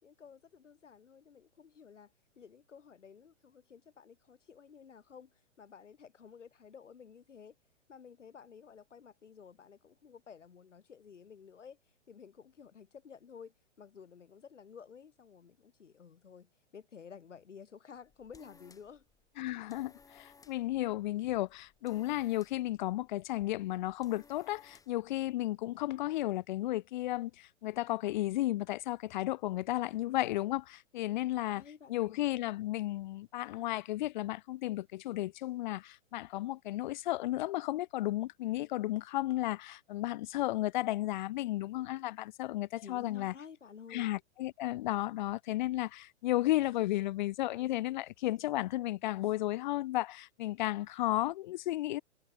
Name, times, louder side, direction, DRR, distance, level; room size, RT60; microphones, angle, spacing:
voice 1, 0.0-2.1 2.4-7.6 7.9-11.8 12.1-19.0 31.3-32.3 42.8-44.1, left 6 dB, 80° left, 3.1 m, -53 dB
sound 1, 17.9-25.1, left 5 dB, 10° left, 2.9 m, -62 dB
voice 2, 19.4-31.6 31.9-43.3 43.9-52.0, left 16 dB, 40° left, 0.6 m, -33 dB
hypercardioid pair, 125°, 36 cm